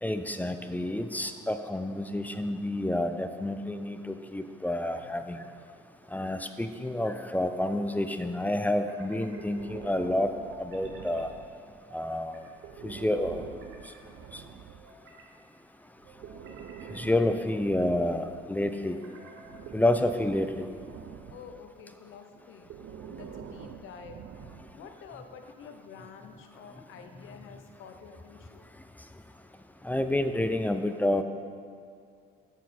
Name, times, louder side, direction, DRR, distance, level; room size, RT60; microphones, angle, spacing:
voice 1, 0.0-5.4 6.1-10.3 10.6-11.3 11.9-12.5 12.8-13.4 13.8-13.9 14.3-14.5 16.9-19.0 19.7-20.7 29.8-31.2, left 1 dB, 10° left, 8 dB, 0.4 m, -29 dB
sound 1, 5.0-5.7 7.0-7.8 8.6-9.5 10.5-11.3 11.9-12.5 13.2-14.0 14.7-15.3 16.0-17.0 17.5-18.0 18.8-19.6, right 2 dB, 85° right, 1.0 m, -54 dB
Breathing, 9.4-11.8 12.5-14.9 16.0-18.8 19.4-21.7 22.6-24.9, right 8 dB, 70° right, 0.5 m, -46 dB
voice 2, 21.3-22.7 23.1-24.3 24.7-28.7, left 6 dB, 85° left, 5 dB, 0.8 m, -48 dB
8.2 x 6.4 x 4.3 m, 2.3 s
cardioid pair, 90°, 20 cm